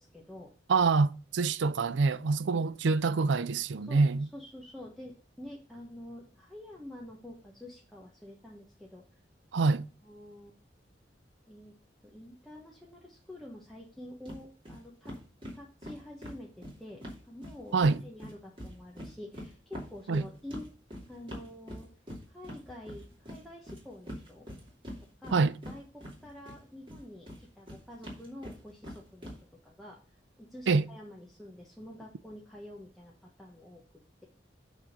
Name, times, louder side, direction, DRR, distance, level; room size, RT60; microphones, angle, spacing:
voice 1, 0.0-0.5 2.5-2.7 3.8-4.0 4.3-9.0 10.0-10.6 11.5-11.7 12.0-15.1 15.5-20.7 21.1-21.9 22.3-24.5 25.0-29.3 29.6-30.0 30.4-33.8, left 1 dB, ahead, 1.2 m, -48 dB
voice 2, 0.7-4.3 9.5-9.8 17.7-18.0 20.1-20.2 25.3-25.5 30.7-30.8, right 4 dB, 80° right, 0.5 m, -26 dB
sound 1, 14.2-14.4 14.6-14.8 15.0-17.9 18.2-26.6 26.9-29.4, equal, 30° right, 2.8 m, -43 dB
8.8 x 3.7 x 6.6 m
head